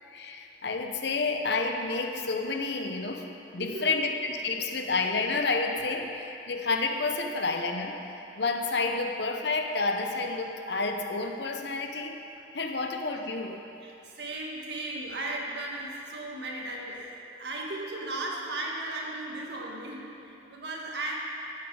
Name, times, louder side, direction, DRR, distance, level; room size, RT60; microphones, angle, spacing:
voice 1, 0.0-12.2 12.5-13.6, left 3 dB, 65° left, 4 dB, 0.9 m, -30 dB
voice 2, 3.6-4.0 13.8-21.1, right 2 dB, 60° right, -2 dB, 1.7 m, -36 dB
14.5 x 8.3 x 4.8 m, 2.9 s
head